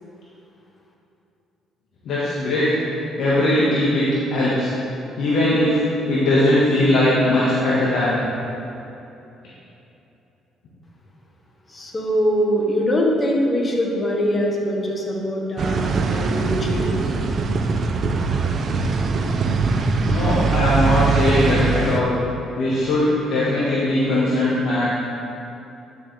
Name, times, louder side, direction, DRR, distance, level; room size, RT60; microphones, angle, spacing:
voice 1, 2.0-2.7 3.2-4.7 5.2-5.8 6.1-8.2 20.1-22.1 22.6-24.9, left 1 dB, 70° left, -8 dB, 1.6 m, -19 dB
voice 2, 11.7-17.1, equal, 30° left, -1 dB, 1.6 m, -22 dB
sound 1, 15.6-22.0, right 4 dB, 55° right, 0.7 m, -21 dB
10.5 x 6.4 x 3.5 m, 2.8 s
supercardioid pair, 75°, 0 cm